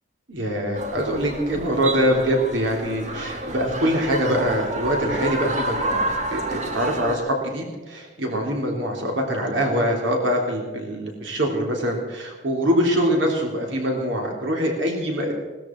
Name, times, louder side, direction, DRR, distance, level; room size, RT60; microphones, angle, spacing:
voice 1, 0.3-6.0 6.3-15.3, equal, 75° right, 0 dB, 3.4 m, -24 dB
sound 1, 0.7-7.2, right 2 dB, 35° right, 1.7 m, -29 dB
19.5 x 13.5 x 4.5 m, 1.4 s
head